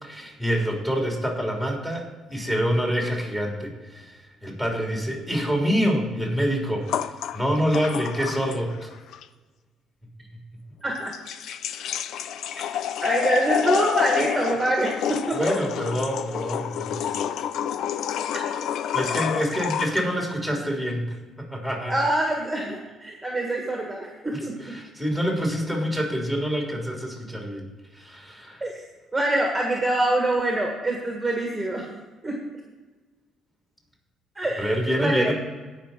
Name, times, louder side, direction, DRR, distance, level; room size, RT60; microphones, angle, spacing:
voice 1, 0.0-2.0 2.3-4.2 4.4-6.9 7.3-8.9 15.4-17.2 18.9-21.9 24.6-27.6 27.9-28.6 34.6-35.3, equal, 10° left, -1 dB, 3.6 m, -26 dB
sound 1, 6.9-8.8 9.1-9.2 11.0-20.1, left 9 dB, 70° left, 0.5 m, -28 dB
voice 2, 10.8-11.1 12.5-12.6 13.0-15.6 21.9-24.7 28.6-28.7 29.1-31.9 32.2-32.4 34.3-35.3, right 1 dB, 10° right, 0 dB, 1.6 m, -25 dB
17.0 x 5.8 x 4.4 m, 1.3 s
cardioid pair, 100°, 0 cm